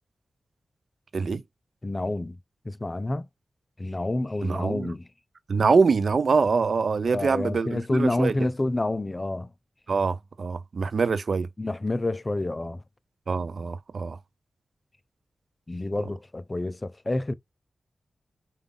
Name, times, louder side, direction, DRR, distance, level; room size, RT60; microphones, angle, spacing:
voice 1, 1.8-2.4 2.7-3.3 3.8-5.1 7.1-9.5 11.6-12.8 15.7-17.3, left 2 dB, 25° left, 0.3 m, -28 dB
voice 2, 4.4-4.9 5.5-8.3 9.9-11.5 13.3-14.2, right 4 dB, 60° right, 0.3 m, -24 dB
5.1 x 2.3 x 3.6 m
wide cardioid pair, 90°, 0 cm